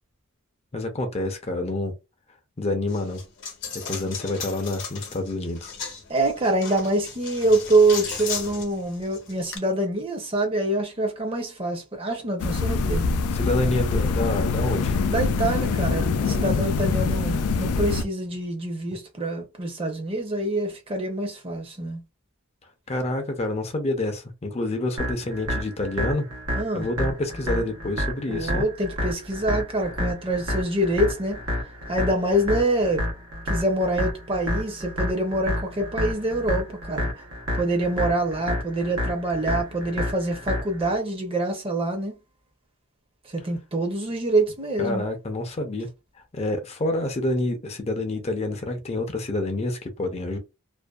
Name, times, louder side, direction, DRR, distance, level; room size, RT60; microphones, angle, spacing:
voice 1, 0.7-1.9 2.6-3.2 3.9-5.7 13.3-15.0 22.9-26.3 26.7-28.6 44.8-45.9 46.3-50.4, left 2 dB, 30° left, 0.5 m, -28 dB
Coin (dropping), 2.9-9.6, left 5 dB, 60° left, 0.8 m, -36 dB
voice 2, 6.1-13.1 15.1-22.0 26.5-26.9 28.3-31.4 31.9-33.1 33.5-37.1 37.6-42.1 43.3-45.1, right 1 dB, 25° right, 0.6 m, -25 dB
sound 1, 12.4-18.0, left 4 dB, 90° left, 0.4 m, -24 dB
sound 2, 25.0-41.0, left 1 dB, 90° right, 0.9 m, -30 dB
2.5 x 2.2 x 2.2 m
head